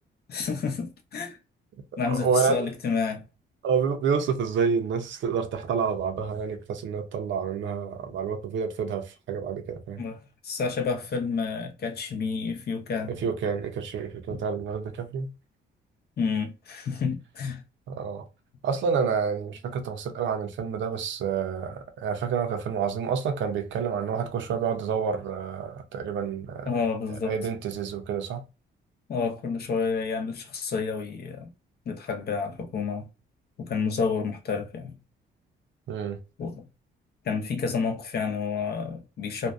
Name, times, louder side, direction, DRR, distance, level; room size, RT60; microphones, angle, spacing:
voice 1, 0.3-1.4 2.0-3.2 10.0-13.2 14.3-14.4 16.2-17.6 26.7-27.3 29.1-31.5 31.9-33.1 33.6-34.9 36.4-36.7 37.2-39.5, left 5 dB, 55° left, 0.7 m, -29 dB
voice 2, 2.1-2.7 3.6-10.0 13.2-15.3 17.9-18.3 18.6-26.7 27.1-28.4 35.9-36.2, right 6 dB, 70° right, 0.6 m, -28 dB
2.6 x 2.2 x 2.4 m
cardioid pair, 90°, 20 cm